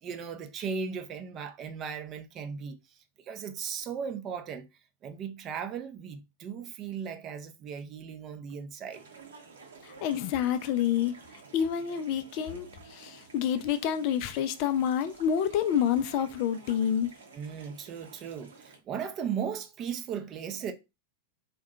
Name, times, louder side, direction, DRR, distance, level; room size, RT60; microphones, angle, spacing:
voice 1, 0.0-2.8 3.3-4.7 5.0-9.0 17.3-20.7, right 7 dB, 30° right, 0.5 m, -37 dB
sound 1, 8.9-18.8, right 4 dB, 65° right, 0.7 m, -52 dB
voice 2, 9.8-11.2 11.5-17.1, left 9 dB, 45° left, 0.3 m, -28 dB
2.7 x 2.2 x 3.6 m
figure-of-eight pair, 90°, 0 cm